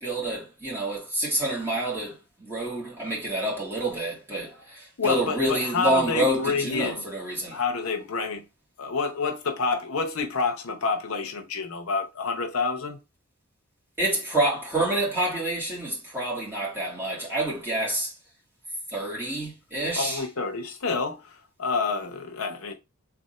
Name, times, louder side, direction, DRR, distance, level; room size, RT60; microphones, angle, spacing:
voice 1, 0.0-2.1 2.4-4.5 5.0-7.5 14.0-18.1 18.9-20.2, right 1 dB, 10° right, 1.7 m, -27 dB
voice 2, 5.0-7.1 7.5-8.4 8.8-13.0 19.9-22.7, left 4 dB, 70° left, 0.8 m, -28 dB
3.6 x 2.6 x 4.1 m
head